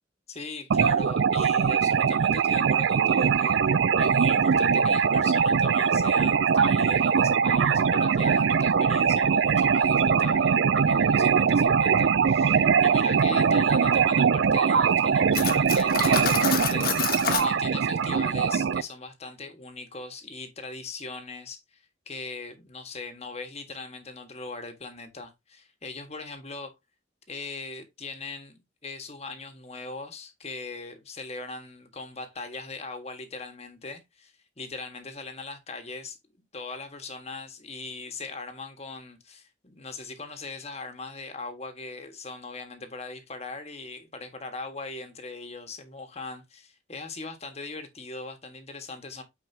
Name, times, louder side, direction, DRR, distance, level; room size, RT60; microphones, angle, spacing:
voice 1, 0.3-26.7 27.3-36.2 36.5-49.2, left 3 dB, 35° left, 1.6 m, -40 dB
sound 1, 0.7-18.8, right 6 dB, 65° right, 0.4 m, -22 dB
Cutlery silverware, 15.3-17.5, left 7 dB, 50° left, 1.4 m, -28 dB
9.3 x 4.7 x 2.8 m
head